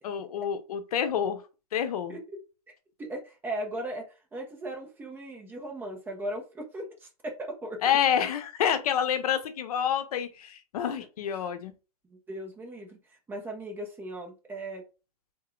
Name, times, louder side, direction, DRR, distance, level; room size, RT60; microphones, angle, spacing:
voice 1, 0.0-1.4 1.7-2.2 7.8-11.7, left 9 dB, 65° left, 0.8 m, -28 dB
voice 2, 3.0-4.1 4.3-7.8 10.9-11.1 12.1-13.0 13.3-14.8, right 1 dB, 10° right, 0.9 m, -37 dB
3.8 x 3.6 x 3.1 m
hypercardioid pair, 155°, 20 cm